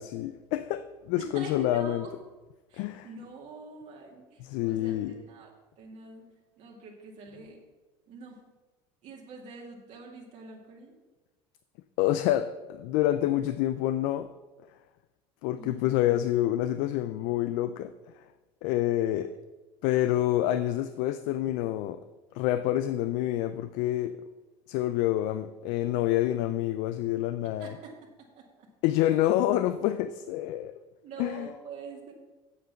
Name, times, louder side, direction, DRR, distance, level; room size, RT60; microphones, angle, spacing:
voice 1, 0.0-2.1 2.8-3.1 4.4-5.2 12.0-14.3 15.4-17.9 18.6-19.3 19.8-22.0 22.3-24.2 24.7-27.8 28.8-30.7 31.2-31.5, left 13 dB, 70° left, 12 dB, 0.5 m, -27 dB
voice 2, 1.2-2.1 2.7-5.5 5.8-6.3 6.6-7.6 8.1-8.4 9.0-11.0 15.6-16.0 27.4-27.9 28.4-28.7 31.0-32.1, right 4 dB, 60° right, -1 dB, 2.0 m, -45 dB
8.1 x 7.6 x 5.8 m, 1.2 s
supercardioid pair, 80°, 14 cm